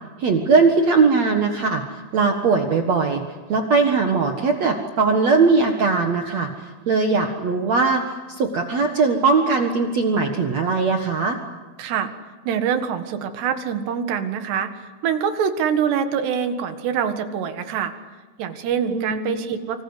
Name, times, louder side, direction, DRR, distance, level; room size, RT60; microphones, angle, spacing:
voice 1, 0.2-3.2 3.5-6.5 6.9-11.4 18.9-19.3, right 4 dB, 55° right, 4 dB, 2.3 m, -20 dB
voice 2, 11.8-12.1 12.5-17.9 18.4-19.8, right 7 dB, 90° right, 8 dB, 3.9 m, -25 dB
28.0 x 26.0 x 8.1 m, 1.3 s
omnidirectional pair, 4.7 m